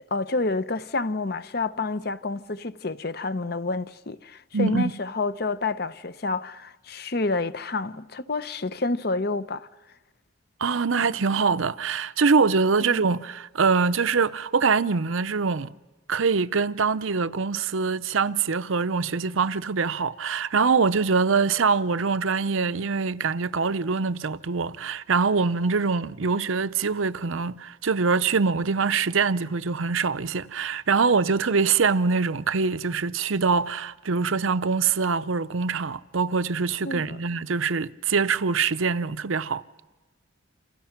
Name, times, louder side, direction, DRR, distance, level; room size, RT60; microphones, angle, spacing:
voice 1, 0.1-9.7 12.9-13.0 36.8-37.2, left 3 dB, 50° left, 0.8 m, -29 dB
voice 2, 4.5-4.9 10.6-15.7 16.1-39.6, right 5 dB, 80° right, 0.7 m, -24 dB
28.5 x 27.5 x 5.9 m
head